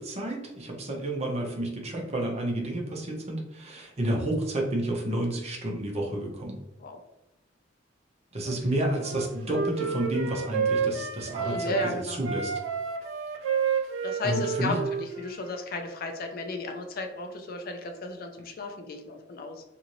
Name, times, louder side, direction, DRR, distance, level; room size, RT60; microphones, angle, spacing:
voice 1, 0.0-6.6 8.3-12.5 13.4-13.8 14.2-14.8, right 1 dB, 35° right, 0 dB, 0.7 m, -30 dB
voice 2, 8.4-8.8 11.4-12.2 14.0-19.6, left 2 dB, 50° left, 5 dB, 0.4 m, -34 dB
Wind instrument woodwind instrument, 9.0-11.9 12.2-15.6, right 6 dB, 85° right, 0.4 m, -30 dB
2.6 x 2.6 x 3.0 m, 0.96 s
head